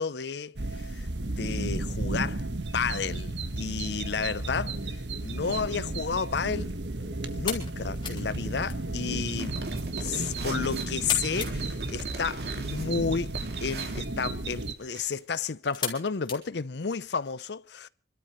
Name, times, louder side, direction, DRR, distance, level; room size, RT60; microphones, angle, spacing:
voice 1, 0.0-2.5 2.7-6.7 7.3-9.6 10.0-13.3 13.6-17.9, left 5 dB, 75° left, 0.6 m, -32 dB
sound 1, 0.6-14.7, right 2 dB, 80° right, 1.4 m, -33 dB
sound 2, 7.1-17.3, left 6 dB, 25° left, 3.5 m, -42 dB
sound 3, 9.3-15.2, right 3 dB, 60° right, 2.3 m, -42 dB
28.0 x 13.0 x 3.2 m
head